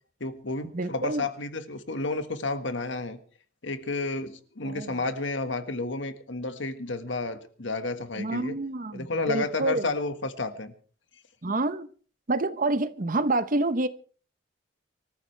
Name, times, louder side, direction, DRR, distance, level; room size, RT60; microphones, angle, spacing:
voice 1, 0.2-3.2 3.6-8.6 8.9-10.7, left 3 dB, 80° left, 9 dB, 1.7 m, -31 dB
voice 2, 0.7-1.2 4.6-4.9 8.2-9.9 11.4-11.9 12.3-13.9, right 2 dB, 45° right, 13 dB, 0.9 m, -27 dB
25.5 x 14.0 x 3.4 m, 0.41 s
head